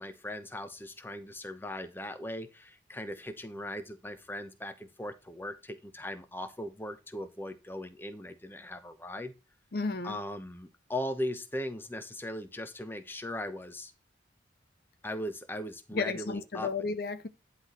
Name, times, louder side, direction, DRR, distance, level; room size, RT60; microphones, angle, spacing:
voice 1, 0.0-9.3 10.0-13.9 15.0-16.7, left 1 dB, 10° left, 0.9 m, -39 dB
voice 2, 9.7-10.2 15.9-17.3, left 4 dB, 50° left, 0.6 m, -33 dB
11.0 x 4.1 x 4.4 m
head